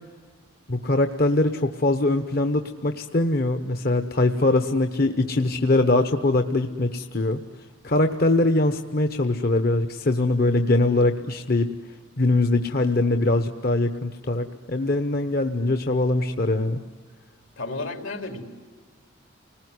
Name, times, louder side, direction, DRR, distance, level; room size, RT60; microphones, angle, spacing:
voice 1, 0.7-7.4 7.8-11.7 12.2-16.8, left 2 dB, 50° left, 7 dB, 1.0 m, -22 dB
voice 2, 17.6-18.5, left 2 dB, 80° left, 4 dB, 4.1 m, -32 dB
30.0 x 20.5 x 9.7 m, 1.5 s
head